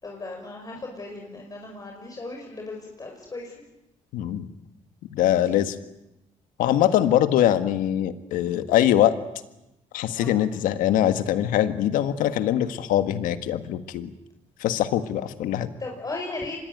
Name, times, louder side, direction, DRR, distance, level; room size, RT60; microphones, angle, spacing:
voice 1, 0.0-3.5 10.1-10.3 15.8-16.6, left 2 dB, 25° left, 1 dB, 5.5 m, -36 dB
voice 2, 4.1-4.5 5.1-5.7 6.6-9.2 9.9-14.1 14.6-15.7, left 11 dB, 85° left, 10 dB, 1.6 m, -22 dB
26.0 x 20.5 x 9.2 m, 0.94 s
cardioid pair, 90°, 14 cm